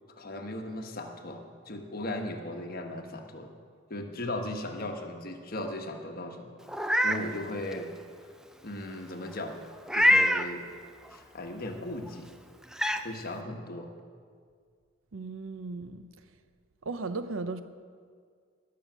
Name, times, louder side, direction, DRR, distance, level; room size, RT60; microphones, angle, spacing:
voice 1, 0.2-3.5 3.9-6.5 7.0-7.9 8.6-9.6 9.9-10.7 11.1-12.3 13.0-13.9, left 1 dB, 45° left, 3 dB, 1.3 m, -37 dB
Meow, 6.7-7.2 7.7-7.8 9.9-10.5 12.1-12.2 12.7-13.0, left 1 dB, 5° right, 0.4 m, -23 dB
voice 2, 15.1-16.1 16.9-17.6, right 3 dB, 75° right, 11 dB, 0.7 m, -36 dB
19.0 x 7.0 x 6.2 m, 2.1 s
head